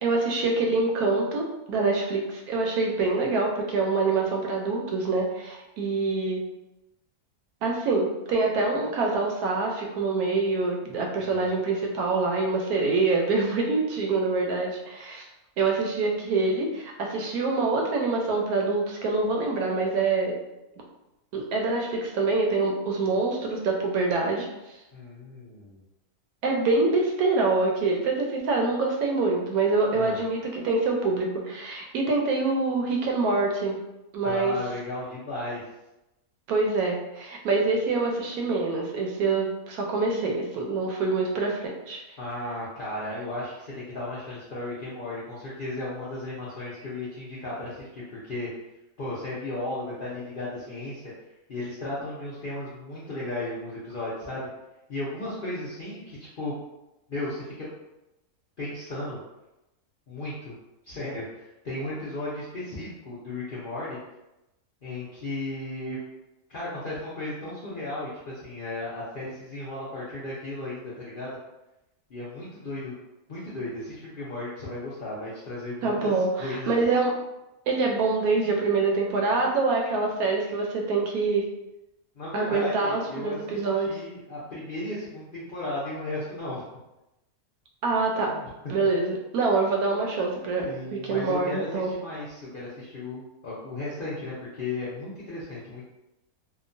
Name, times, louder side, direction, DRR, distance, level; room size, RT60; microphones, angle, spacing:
voice 1, 0.0-6.4 7.6-15.3 15.6-20.3 21.3-24.5 26.4-33.8 34.1-34.6 36.5-42.0 75.8-77.1 77.7-81.5 82.3-84.0 87.8-88.4 88.7-91.9, right 3 dB, 75° right, 0 dB, 1.0 m, -25 dB
voice 2, 24.9-25.8 29.9-30.2 34.2-35.6 42.2-48.5 49.0-51.0 51.5-54.5 54.9-56.5 57.1-57.7 58.6-59.2 60.1-60.5 60.8-64.0 64.8-66.0 66.5-71.4 72.1-72.9 73.3-76.7 82.1-86.6 88.3-88.7 90.6-95.8, left 2 dB, 65° left, -8 dB, 0.5 m, -35 dB
2.8 x 2.1 x 2.5 m, 0.94 s
omnidirectional pair, 1.6 m